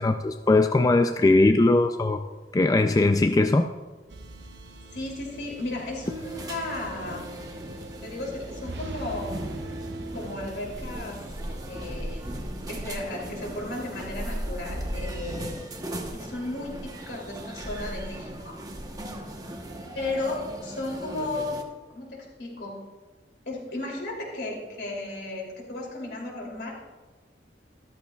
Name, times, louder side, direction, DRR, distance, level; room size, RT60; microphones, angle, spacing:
voice 1, 0.0-2.2 2.5-3.7, left 2 dB, 20° left, 7 dB, 0.3 m, -20 dB
sound 1, 4.1-15.5, right 1 dB, 75° right, 0.8 m, -41 dB
voice 2, 4.9-7.3 8.0-9.4 10.1-11.2 11.6-12.2 12.7-15.5 16.1-18.5 19.9-21.6 21.9-22.8 23.4-26.7, left 2 dB, 70° left, -1 dB, 2.9 m, -34 dB
sound 2, 6.0-21.6, right 1 dB, 20° right, 1.0 m, -38 dB
13.5 x 13.0 x 2.3 m, 1.3 s
head